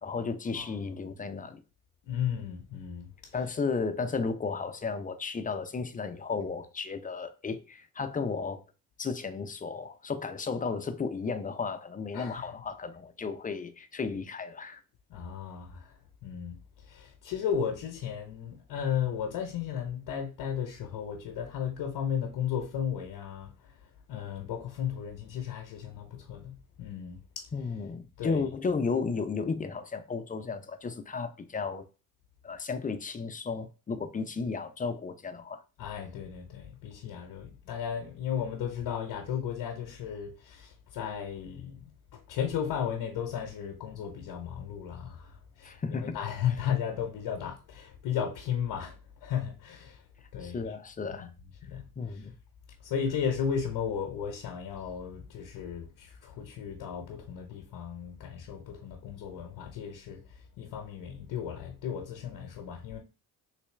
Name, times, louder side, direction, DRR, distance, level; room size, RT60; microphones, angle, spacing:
voice 1, 0.0-1.6 3.3-8.6 9.0-14.8 27.5-31.8 32.4-35.6 45.6-46.2 50.4-51.3 52.0-52.3, left 4 dB, 20° left, 0.5 m, -34 dB
voice 2, 2.1-3.3 12.1-12.6 15.1-27.5 28.2-28.5 35.8-50.0 50.3-50.6 51.1-51.3 51.6-52.2 52.8-63.0, left 8 dB, 55° left, 0.8 m, -35 dB
3.2 x 3.0 x 3.1 m
hypercardioid pair, 50°, 46 cm